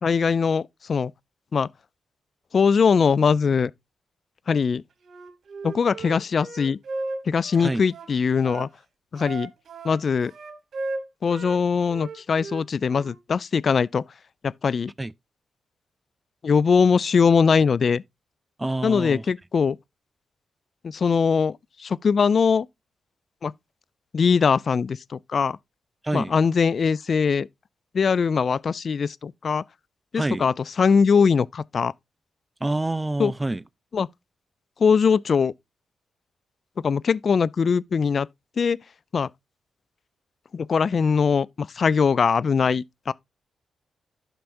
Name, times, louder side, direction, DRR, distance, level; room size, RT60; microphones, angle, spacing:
voice 1, 0.0-1.1 1.5-1.7 2.5-3.7 4.5-4.8 5.6-6.8 7.3-8.7 9.1-9.5 9.8-10.3 11.2-14.0 14.4-14.9 16.4-18.0 18.8-19.8 20.8-22.7 23.4-23.5 24.1-25.6 26.1-27.5 27.9-29.6 30.1-31.9 33.2-33.3 33.9-34.1 34.8-35.5 36.8-38.3 38.6-38.8 39.1-39.3 40.5-43.1, left 6 dB, 55° left, 0.3 m, -21 dB
Wind instrument woodwind instrument, 5.0-8.7 9.2-11.6 11.9-13.2, right 3 dB, 65° right, 1.4 m, -36 dB
voice 2, 18.6-19.2 26.0-26.4 30.1-30.5 32.6-33.6, right 2 dB, 20° right, 0.4 m, -27 dB
11.5 x 5.8 x 2.6 m
supercardioid pair, 45°, 0 cm